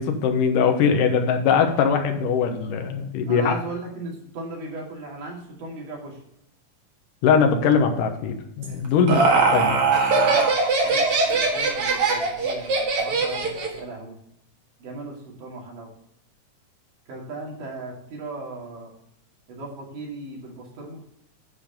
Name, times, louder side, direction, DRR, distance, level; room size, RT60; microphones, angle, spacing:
voice 1, 0.0-3.5 7.2-9.2 9.5-9.7, left 6 dB, 85° left, 5 dB, 2.7 m, -21 dB
voice 2, 3.3-6.2 9.0-9.8 10.3-10.5 10.8-11.0 11.5-14.2 14.8-15.9 17.1-18.9 19.5-21.0, right 2 dB, 80° right, -2 dB, 4.1 m, -37 dB
Laughter, 8.6-13.8, right 3 dB, 50° right, 2.3 m, -21 dB
9.8 x 5.0 x 5.3 m, 0.79 s
omnidirectional pair, 3.7 m